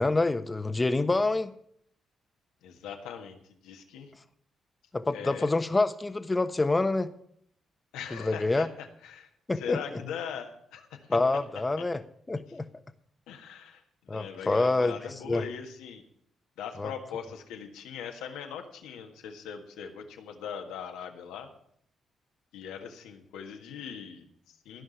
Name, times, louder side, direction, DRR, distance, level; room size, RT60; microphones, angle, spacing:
voice 1, 0.0-1.5 4.9-7.1 8.2-8.7 9.5-9.8 11.1-12.0 12.3-12.7 14.1-14.9 15.3-15.4 16.8-16.9, left 2 dB, 25° left, 10 dB, 1.2 m, -26 dB
voice 2, 2.6-4.1 5.1-5.5 7.9-9.3 9.5-11.2 11.8-11.9 13.3-16.0 16.6-21.5 22.5-24.8, left 7 dB, 80° left, 4 dB, 1.6 m, -40 dB
15.0 x 5.4 x 9.8 m, 0.68 s
hypercardioid pair, 45°, 0 cm